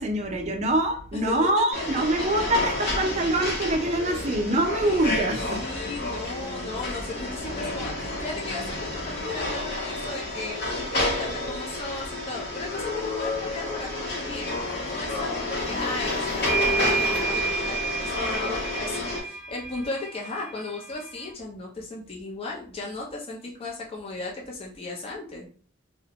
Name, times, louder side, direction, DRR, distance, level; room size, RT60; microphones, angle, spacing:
voice 1, 0.0-5.6, right 1 dB, 35° right, 2 dB, 0.5 m, -25 dB
sound 1, 1.7-19.2, left 2 dB, 55° left, 0.8 m, -30 dB
voice 2, 1.8-2.3 4.8-5.1 5.6-25.5, left 2 dB, 30° left, -3 dB, 0.5 m, -36 dB
sound 2, 3.2-9.3, equal, 85° left, 0.5 m, -42 dB
sound 3, 15.9-16.0 16.5-21.3, right 5 dB, ahead, 0.7 m, -30 dB
2.4 x 2.1 x 2.8 m, 0.43 s
head